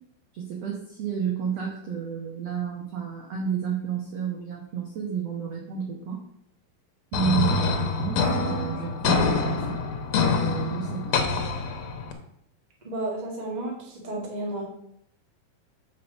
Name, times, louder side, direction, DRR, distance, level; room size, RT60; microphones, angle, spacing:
voice 1, 0.3-6.2 7.1-9.8 10.3-11.2, right 8 dB, 65° right, 0 dB, 1.6 m, -31 dB
sound 1, 7.1-12.1, left 4 dB, 65° left, 2.3 m, -25 dB
voice 2, 12.8-14.7, right 2 dB, 20° right, -2 dB, 1.3 m, -32 dB
7.1 x 5.1 x 6.7 m, 0.74 s
omnidirectional pair, 4.5 m